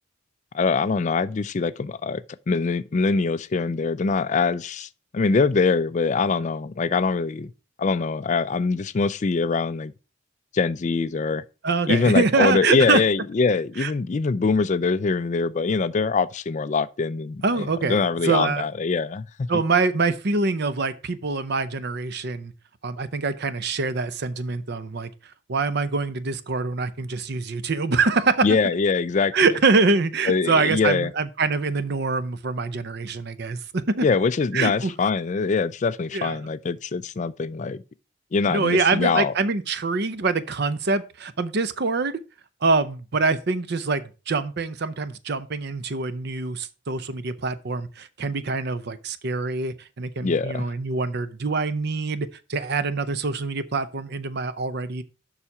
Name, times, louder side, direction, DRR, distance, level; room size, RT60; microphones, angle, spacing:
voice 1, 0.5-7.5 7.8-9.9 10.5-11.4 11.9-19.5 28.4-29.3 30.3-31.1 34.0-37.8 38.3-39.3 50.2-50.7, left 4 dB, 35° left, 0.3 m, -23 dB
voice 2, 11.6-13.0 13.8-13.9 17.4-18.6 19.5-22.5 22.8-25.1 25.5-28.6 29.3-33.6 34.0-34.1 34.5-34.9 36.1-36.4 38.5-42.2 42.6-55.0, right 4 dB, 50° right, 0.6 m, -24 dB
7.2 x 5.7 x 4.8 m
head